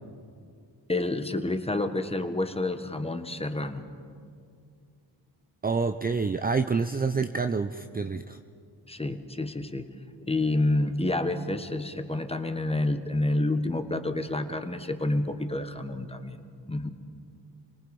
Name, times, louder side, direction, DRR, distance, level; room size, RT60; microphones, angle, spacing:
voice 1, 0.9-3.8 8.9-9.9 10.3-16.4 16.7-16.9, left 2 dB, 15° left, 8 dB, 1.4 m, -29 dB
voice 2, 5.6-8.4, right 4 dB, 20° right, 9 dB, 0.6 m, -27 dB
28.5 x 19.0 x 5.4 m, 2.3 s
cardioid pair, 80°, 44 cm